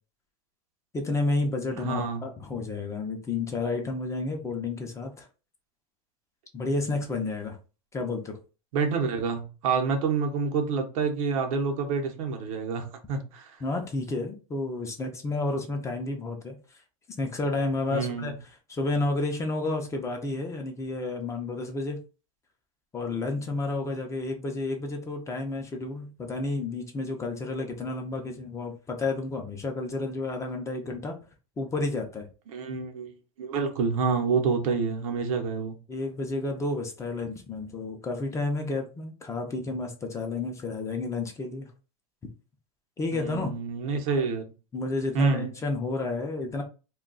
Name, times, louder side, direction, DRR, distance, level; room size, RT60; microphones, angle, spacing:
voice 1, 0.9-5.3 6.5-7.6 7.9-8.4 13.6-16.6 17.2-18.3 18.7-22.0 22.9-31.1 31.6-32.3 35.9-41.7 43.0-43.5 44.7-46.6, left 3 dB, 15° left, 0.5 m, -31 dB
voice 2, 1.7-2.2 8.7-13.6 17.9-18.3 32.5-33.1 33.4-35.8 43.1-44.4 45.1-45.5, right 5 dB, 70° right, 0.8 m, -28 dB
2.3 x 2.2 x 3.8 m
supercardioid pair, 135°, 18 cm